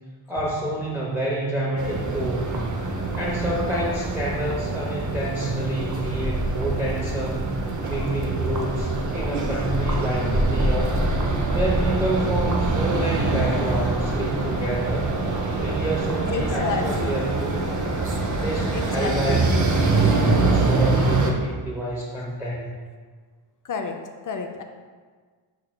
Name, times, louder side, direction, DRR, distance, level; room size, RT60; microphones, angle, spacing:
voice 1, 0.3-2.6 3.2-7.5 7.9-11.0 11.5-15.1 15.5-17.5 18.3-22.7, right 1 dB, 5° right, -6 dB, 0.7 m, -28 dB
sound 1, 1.8-21.3, right 2 dB, 40° right, 0.7 m, -24 dB
voice 2, 16.3-17.2 18.7-19.5 23.6-24.0 24.2-24.6, left 5 dB, 45° left, 4 dB, 0.5 m, -30 dB
5.1 x 4.3 x 2.2 m, 1.5 s
cardioid pair, 75°, 46 cm